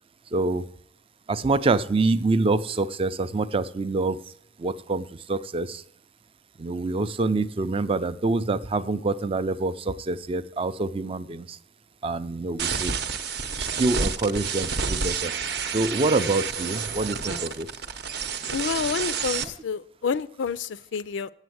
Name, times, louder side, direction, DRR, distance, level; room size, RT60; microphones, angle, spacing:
voice 1, 0.3-0.6 1.3-4.2 4.6-5.8 6.6-11.6 12.0-13.0 13.6-15.4 15.7-17.7, right 3 dB, 30° right, 14 dB, 0.4 m, -26 dB
sound 1, 12.6-19.4, right 5 dB, 60° right, 0.8 m, -29 dB
voice 2, 18.5-21.3, left 6 dB, 75° left, 17 dB, 0.4 m, -29 dB
8.1 x 7.6 x 7.8 m, 0.68 s
head